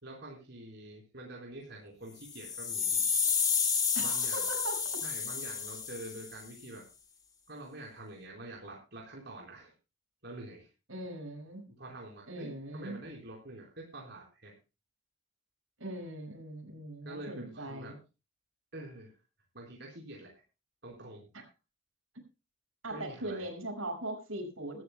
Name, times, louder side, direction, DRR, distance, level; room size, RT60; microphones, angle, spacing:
voice 1, 0.0-3.2 4.0-4.5 5.0-6.8 7.5-9.7 10.2-10.7 11.8-14.5 17.0-17.9 18.7-19.1 19.5-20.3 20.8-21.3 22.9-23.5, right 1 dB, 55° right, -2 dB, 4.2 m, -46 dB
sound 1, 2.2-6.4, left 6 dB, 20° left, 1.4 m, -31 dB
voice 2, 3.9-4.8 10.9-11.6 12.3-13.0 15.8-18.0 22.8-24.8, right 1 dB, 75° right, 4 dB, 5.7 m, -40 dB
22.5 x 14.0 x 2.2 m, 0.30 s
head